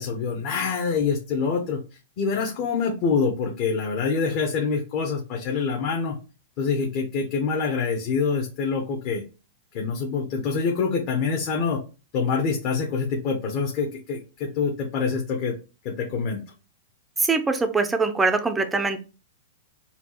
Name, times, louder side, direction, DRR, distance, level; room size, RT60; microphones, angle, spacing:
voice 1, 0.0-1.8 2.2-6.2 6.6-9.2 9.7-11.8 12.1-15.6 15.8-16.4, left 5 dB, 40° left, 0 dB, 0.9 m, -25 dB
voice 2, 17.2-19.0, right 4 dB, 10° right, 8 dB, 0.5 m, -23 dB
4.4 x 2.3 x 4.3 m, 0.32 s
hypercardioid pair, 145°, 0 cm